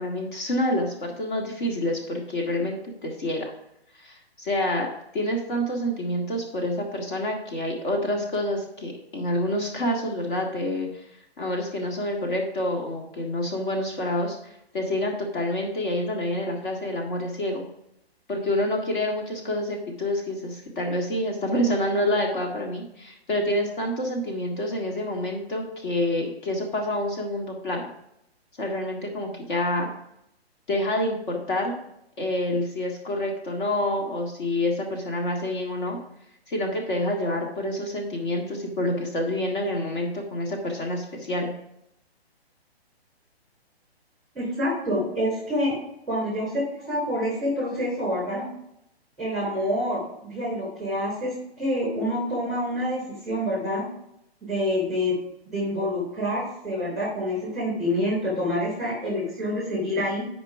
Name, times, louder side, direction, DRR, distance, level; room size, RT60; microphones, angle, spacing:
voice 1, 0.0-3.5 4.0-4.9 5.1-11.0 11.4-17.6 18.3-27.9 28.6-29.9 30.7-31.8 32.2-36.0 36.5-41.5, left 1 dB, 50° left, 1 dB, 1.9 m, -27 dB
voice 2, 44.3-45.8 46.1-48.5 49.2-53.9 54.4-55.2 55.5-60.2, left 1 dB, ahead, -3 dB, 3.2 m, -27 dB
9.5 x 5.1 x 4.7 m, 0.79 s
hypercardioid pair, 155°, 32 cm